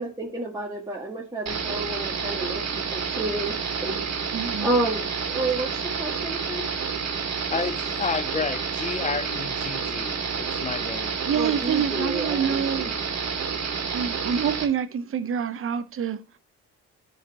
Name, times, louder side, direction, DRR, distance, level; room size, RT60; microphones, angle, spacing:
voice 1, 0.0-2.6 2.9-3.5 3.8-4.0 4.6-5.7 6.0-6.6 11.3-12.8, right 2 dB, 10° right, 1.8 m, -30 dB
sound 1, 1.5-14.7, right 6 dB, 60° right, 2.3 m, -29 dB
voice 2, 4.3-4.7 11.3-12.9 13.9-16.2, right 8 dB, 45° right, 0.9 m, -26 dB
voice 3, 7.5-11.2, left 5 dB, 25° left, 0.4 m, -31 dB
12.0 x 5.1 x 2.9 m
cardioid pair, 90°, 30 cm